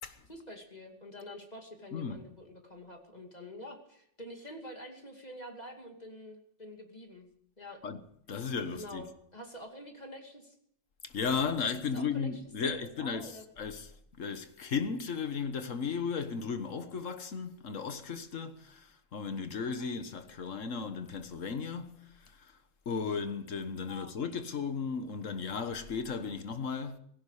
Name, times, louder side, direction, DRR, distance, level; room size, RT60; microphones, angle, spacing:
voice 1, 0.3-7.3 7.6-7.8 8.7-10.5 11.5-11.6 11.9-13.5 23.9-24.2, left 1 dB, 35° left, 2.6 m, -47 dB
voice 2, 8.3-9.0 11.0-22.6 22.8-27.0, left 5 dB, 85° left, 1.7 m, -35 dB
17.0 x 16.5 x 4.9 m
omnidirectional pair, 1.3 m